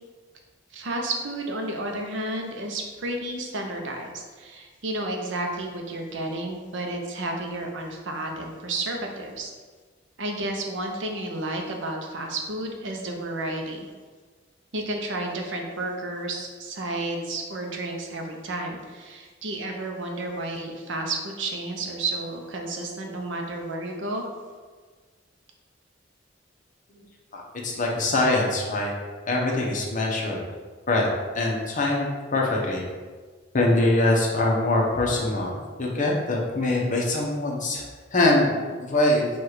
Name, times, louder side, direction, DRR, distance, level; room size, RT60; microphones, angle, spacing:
voice 1, 0.7-9.5 10.2-13.9 14.7-24.3, right 2 dB, 70° right, 2 dB, 0.7 m, -31 dB
voice 2, 27.3-28.9 29.3-30.4 30.9-31.1 31.3-32.8 33.5-35.5 35.8-37.8 38.1-39.3, left 2 dB, 40° left, -2 dB, 0.8 m, -23 dB
4.7 x 2.4 x 4.7 m, 1.5 s
head